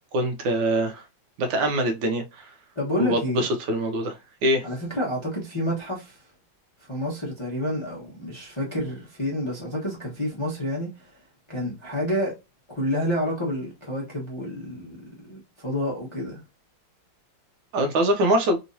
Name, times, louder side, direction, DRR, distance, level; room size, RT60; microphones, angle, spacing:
voice 1, 0.1-1.0 1.4-2.5 3.0-4.7 17.7-18.6, right 1 dB, 80° right, 1.3 m, -24 dB
voice 2, 2.8-3.5 4.6-6.2 6.8-11.1 11.5-12.3 12.7-15.0 15.3-16.4, equal, 20° left, 0.9 m, -29 dB
3.5 x 2.9 x 2.6 m
omnidirectional pair, 2.1 m